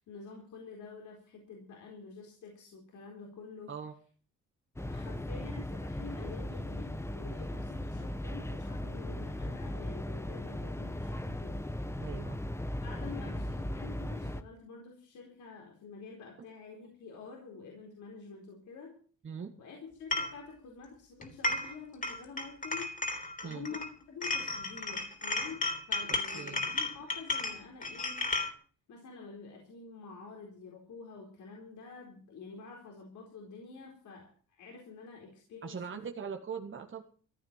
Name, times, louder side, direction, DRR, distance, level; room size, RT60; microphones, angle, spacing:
voice 1, 0.0-3.7 4.8-11.8 12.8-18.9 19.6-22.9 23.4-28.2 28.9-35.8, left 4 dB, 75° left, 0 dB, 4.3 m, -48 dB
sound 1, 4.8-14.4, left 1 dB, 10° left, 1.1 m, -37 dB
voice 2, 12.0-12.4 19.2-19.5 23.4-23.7 26.1-26.8 35.6-37.0, right 6 dB, 40° right, 4 dB, 1.8 m, -41 dB
sound 2, 20.1-20.3 21.2-21.8 22.0-23.9 24.2-28.5, left 2 dB, 25° left, 3.6 m, -34 dB
15.5 x 9.6 x 7.4 m, 0.43 s
cardioid pair, 90°, 30 cm